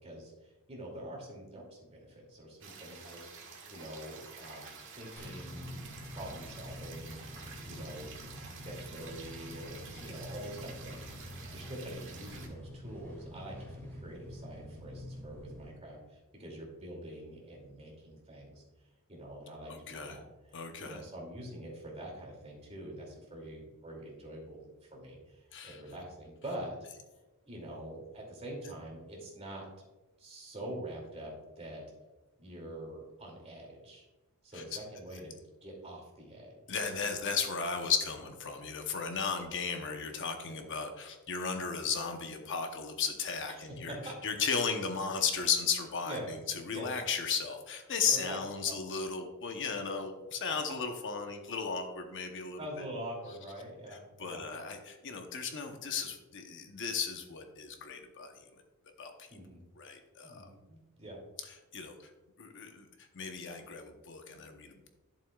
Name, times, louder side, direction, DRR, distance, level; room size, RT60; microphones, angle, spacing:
voice 1, 0.0-5.8 6.1-7.2 7.6-8.2 8.6-18.6 19.1-26.8 27.5-29.7 30.2-31.8 32.4-34.0 34.4-35.3 35.6-36.8 40.4-40.7 43.5-44.1 46.1-46.4 46.7-46.9 48.0-48.4 48.6-48.8 52.6-54.5 59.3-59.6 60.2-61.2, right 1 dB, 30° right, -1 dB, 2.5 m, -45 dB
sound 1, 2.6-12.5, right 5 dB, 60° right, 1.6 m, -50 dB
sound 2, 5.2-15.7, left 1 dB, 10° left, 2.3 m, -46 dB
voice 2, 19.7-20.2 20.5-21.0 25.5-25.8 34.5-34.6 36.7-44.0 44.2-52.6 53.9-58.4 59.0-59.3 59.8-60.5 61.7-62.1 62.4-62.9 63.1-64.9, left 5 dB, 55° left, 5 dB, 0.9 m, -35 dB
11.5 x 7.2 x 2.3 m, 1.1 s
head